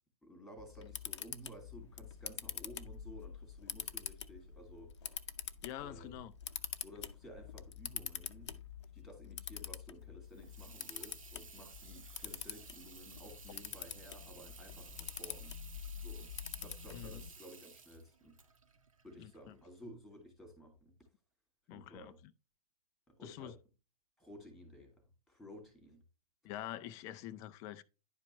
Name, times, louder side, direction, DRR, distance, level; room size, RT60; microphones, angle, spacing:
voice 1, 0.2-5.2 5.8-6.2 6.8-8.7 8.9-15.5 16.0-16.3 16.6-18.4 19.0-20.9 21.7-22.2 23.1-23.6 24.2-26.0, equal, ahead, 2.8 m, -54 dB
Camera, 0.6-17.3, left 8 dB, 50° left, 0.7 m, -46 dB
voice 2, 5.6-6.3 16.9-17.2 19.2-19.5 21.7-22.1 23.2-23.5 26.4-27.8, left 12 dB, 15° left, 0.4 m, -46 dB
Water tap faucet / Sink (filling or washing), 10.2-19.8, right 5 dB, 60° right, 1.3 m, -56 dB
10.5 x 5.1 x 3.2 m
figure-of-eight pair, 120°, 19 cm